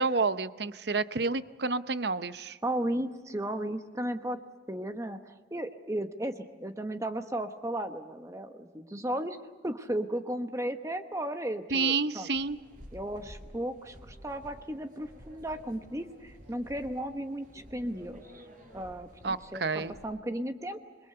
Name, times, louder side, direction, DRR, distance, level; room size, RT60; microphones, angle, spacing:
voice 1, 0.0-2.6 11.7-12.6 19.2-19.9, right 4 dB, 65° right, 13 dB, 0.8 m, -29 dB
voice 2, 2.6-4.4 4.7-5.2 5.5-9.4 9.6-12.3 12.9-18.4 18.7-20.8, right 1 dB, 15° right, 7 dB, 1.1 m, -35 dB
sound 1, 12.3-20.1, equal, 45° right, 6.0 m, -52 dB
28.0 x 22.5 x 6.9 m, 1.4 s
head